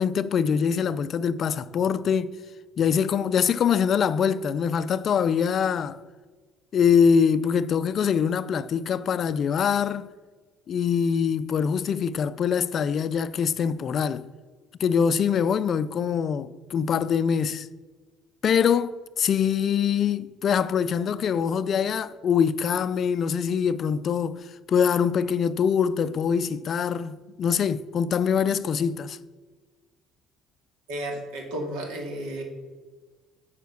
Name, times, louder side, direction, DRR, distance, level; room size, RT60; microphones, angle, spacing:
voice 1, 0.0-2.4 2.8-6.0 6.7-10.1 10.7-14.2 14.8-17.7 18.4-29.2, left 7 dB, 35° left, 0.3 m, -24 dB
voice 2, 30.9-32.4, right 1 dB, 85° right, 2.3 m, -33 dB
9.3 x 5.0 x 6.9 m
cardioid pair, 165°, 0 cm